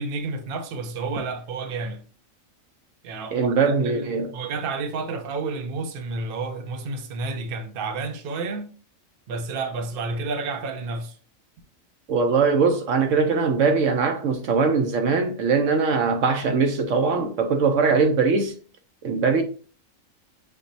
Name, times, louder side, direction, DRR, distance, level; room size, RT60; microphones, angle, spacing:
voice 1, 0.0-2.0 3.0-3.6 3.8-8.7 9.3-11.2, right 3 dB, 50° right, 0.8 m, -30 dB
voice 2, 3.3-4.3 12.1-18.5 19.0-19.4, right 4 dB, 70° right, 1.0 m, -21 dB
6.5 x 3.0 x 2.6 m
omnidirectional pair, 1.4 m